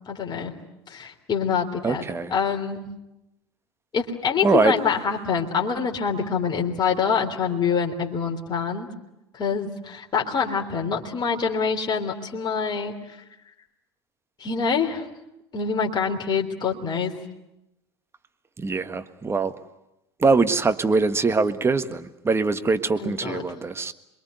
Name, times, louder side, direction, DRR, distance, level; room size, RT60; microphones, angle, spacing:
voice 1, 0.1-0.5 0.9-2.0 2.3-2.9 3.9-8.9 9.3-13.0 14.4-15.0 15.5-17.1 23.0-23.5, left 6 dB, 30° left, 1 dB, 3.4 m, -25 dB
voice 2, 1.8-2.3 4.4-4.7 18.6-19.5 20.2-23.9, right 4 dB, 15° right, 9 dB, 1.6 m, -22 dB
27.0 x 22.5 x 9.4 m, 0.88 s
figure-of-eight pair, 75°, 14 cm